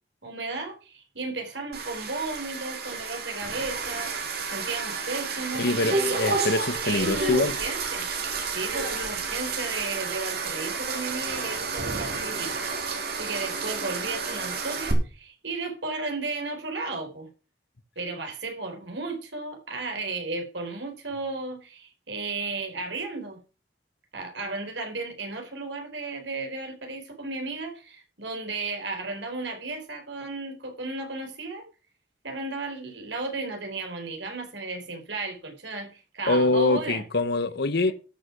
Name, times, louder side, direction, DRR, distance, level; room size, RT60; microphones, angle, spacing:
voice 1, 0.2-6.2 6.8-8.1 8.5-12.5 13.1-17.3 18.0-23.4 24.1-31.7 32.2-37.0, right 3 dB, 85° right, 4.2 m, -34 dB
sound 1, 1.7-14.9, right 4 dB, 60° right, 3.3 m, -31 dB
voice 2, 5.6-7.5 36.3-37.9, left 2 dB, 60° left, 1.0 m, -24 dB
13.0 x 6.6 x 6.1 m
head